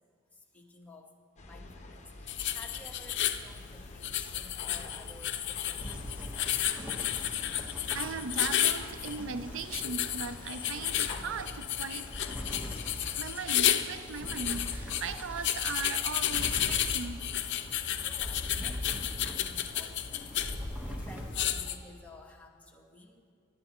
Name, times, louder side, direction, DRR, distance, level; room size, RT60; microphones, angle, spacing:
voice 1, 0.3-1.2 1.4-6.7 12.8-13.1 18.0-18.8 19.2-20.3 20.6-23.2, left 2 dB, 10° left, 0 dB, 1.1 m, -53 dB
sound 1, 1.4-12.9, left 2 dB, 35° left, 0.9 m, -48 dB
sound 2, 2.3-21.8, left 11 dB, 60° left, 0.5 m, -33 dB
sound 3, 5.8-21.7, equal, 10° right, 1.2 m, -42 dB
voice 2, 7.9-12.4 13.2-17.3 17.8-17.9, right 5 dB, 65° right, 11 dB, 0.4 m, -38 dB
18.0 x 11.5 x 3.0 m, 2.2 s
head